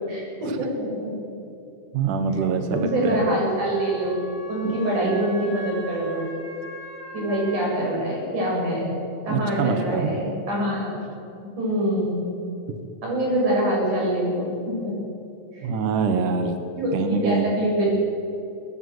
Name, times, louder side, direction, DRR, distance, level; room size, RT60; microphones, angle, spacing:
voice 1, 0.1-1.1 2.7-4.1 4.5-6.3 7.1-8.9 9.3-11.0 11.6-12.3 13.0-14.9 15.5-15.7 16.8-17.9, right 1 dB, 40° right, -3 dB, 8.8 m, -25 dB
voice 2, 1.9-3.2 4.6-4.7 5.0-5.2 9.3-10.2 15.6-16.6 16.9-17.5, right 5 dB, 70° right, 7 dB, 2.0 m, -24 dB
Wind instrument woodwind instrument, 2.7-7.8, equal, 10° right, 5.1 m, -41 dB
21.5 x 20.0 x 8.1 m, 2.7 s
omnidirectional pair, 5.7 m